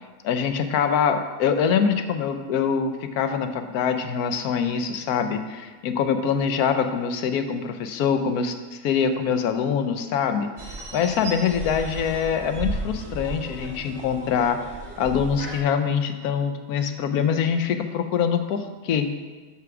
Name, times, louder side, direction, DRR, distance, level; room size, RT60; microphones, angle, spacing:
voice 1, 0.2-10.5 10.9-14.7 15.0-19.1, left 7 dB, 75° left, 8 dB, 1.1 m, -24 dB
sound 1, 10.6-15.6, right 2 dB, 60° right, 1.7 m, -35 dB
6.0 x 5.8 x 6.0 m, 1.4 s
omnidirectional pair, 1.7 m